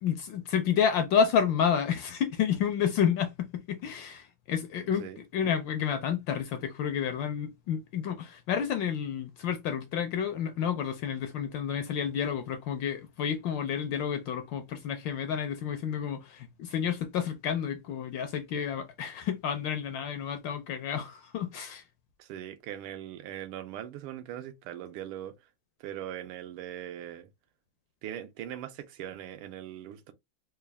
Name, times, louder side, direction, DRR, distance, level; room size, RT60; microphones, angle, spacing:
voice 1, 0.0-21.8, left 8 dB, 75° left, 1.1 m, -30 dB
voice 2, 22.2-25.3 25.8-27.3 28.0-30.1, right 11 dB, 85° right, 1.5 m, -40 dB
4.1 x 2.3 x 3.3 m
omnidirectional pair, 2.4 m